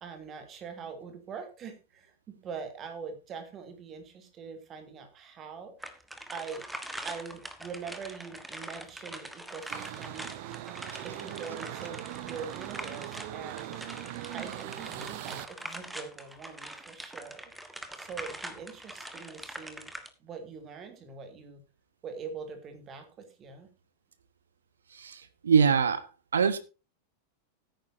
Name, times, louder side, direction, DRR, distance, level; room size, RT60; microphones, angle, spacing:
voice 1, 0.0-5.7 6.3-6.7 7.0-10.3 11.0-13.8 14.3-17.5 18.0-19.9 20.2-21.6 22.0-23.7, right 5 dB, 30° right, 2.7 m, -43 dB
sound 1, 5.8-20.1, right 1 dB, 5° right, 1.4 m, -43 dB
sound 2, 9.7-15.5, right 14 dB, 50° right, 1.0 m, -40 dB
voice 2, 24.9-26.1 26.3-26.6, right 6 dB, 70° right, 1.1 m, -24 dB
16.0 x 9.2 x 2.7 m
figure-of-eight pair, 90°, 0 cm